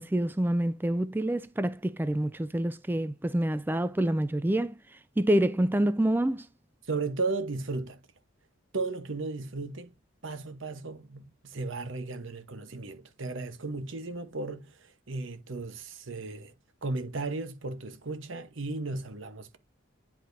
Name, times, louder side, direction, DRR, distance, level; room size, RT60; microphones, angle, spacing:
voice 1, 0.0-4.8 5.2-6.5, right 1 dB, 10° right, 0.3 m, -27 dB
voice 2, 6.9-8.0 8.7-9.9 10.2-16.5 16.8-19.6, right 3 dB, 70° right, 1.0 m, -35 dB
10.5 x 4.2 x 2.6 m
head